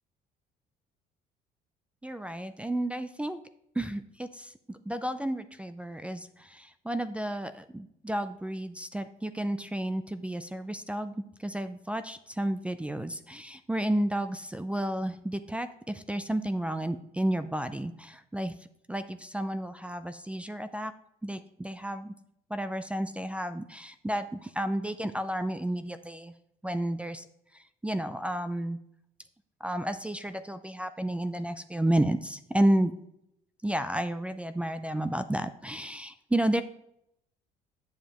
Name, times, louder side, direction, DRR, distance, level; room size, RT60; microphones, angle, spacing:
voice 1, 2.0-3.4 3.8-11.1 11.4-18.5 18.9-20.9 21.2-22.1 22.5-26.3 26.6-27.3 27.5-28.8 29.6-32.9 33.6-36.6, right 1 dB, 5° right, 11 dB, 0.4 m, -31 dB
8.5 x 7.1 x 3.0 m, 0.76 s
cardioid pair, 110°, 17 cm